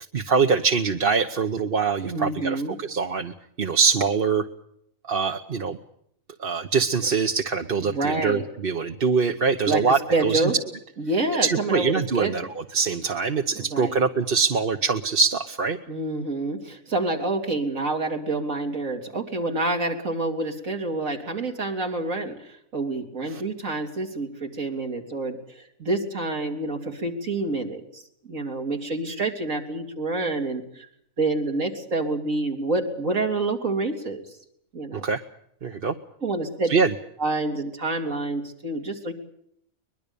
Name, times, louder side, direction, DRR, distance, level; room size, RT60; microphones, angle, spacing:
voice 1, 0.1-3.3 3.6-4.5 5.1-5.8 6.4-10.5 11.4-12.5 12.7-15.8 23.3-23.4 34.9-35.2 35.6-35.9 36.7-36.9, right 5 dB, 45° right, 5 dB, 1.2 m, -23 dB
voice 2, 2.0-2.7 7.8-8.4 9.6-10.5 11.0-12.5 13.6-13.9 15.9-28.0 28.3-30.9 31.2-34.2 34.7-35.0 36.2-36.8 37.2-39.1, right 2 dB, 75° right, 2 dB, 3.4 m, -27 dB
23.0 x 21.5 x 6.9 m, 0.71 s
omnidirectional pair, 1.4 m